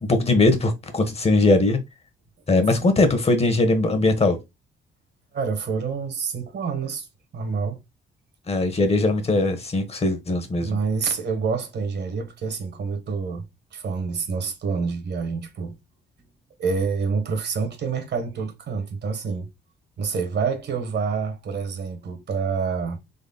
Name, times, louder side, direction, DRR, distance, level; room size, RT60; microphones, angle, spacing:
voice 1, 0.0-1.8 2.5-4.4 8.5-10.8, left 2 dB, 30° left, 1.2 m, -20 dB
voice 2, 5.3-7.1 7.3-7.8 10.6-15.8 16.6-19.5 20.0-23.0, right 5 dB, 60° right, 1.3 m, -27 dB
4.1 x 3.2 x 4.0 m
cardioid pair, 90°, 20 cm